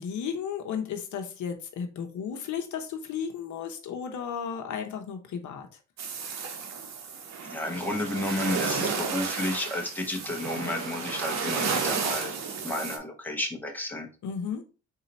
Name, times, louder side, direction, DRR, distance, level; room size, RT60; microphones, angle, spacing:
voice 1, 0.0-5.7 14.2-14.6, left 7 dB, 70° left, 0.9 m, -34 dB
sound 1, 6.0-13.0, right 5 dB, 60° right, 1.0 m, -32 dB
voice 2, 7.4-12.4 12.6-14.1, left 1 dB, 5° left, 1.1 m, -32 dB
4.0 x 2.8 x 4.1 m
cardioid pair, 90°, 30 cm